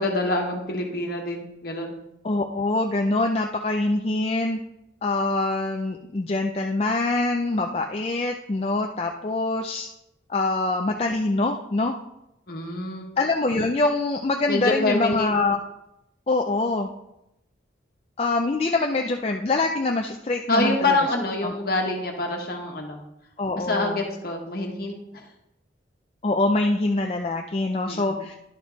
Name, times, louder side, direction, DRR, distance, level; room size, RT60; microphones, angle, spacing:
voice 1, 0.0-1.9 12.5-13.1 14.5-15.4 20.5-23.0 23.6-25.2 27.8-28.2, left 2 dB, 55° left, 1 dB, 1.4 m, -26 dB
voice 2, 2.2-4.6 5.0-9.9 10.3-12.0 13.2-15.6 16.3-16.9 18.2-21.0 21.4-21.5 23.4-24.0 26.2-28.3, left 2 dB, 30° left, 2 dB, 0.4 m, -24 dB
11.0 x 5.3 x 4.0 m, 0.85 s
head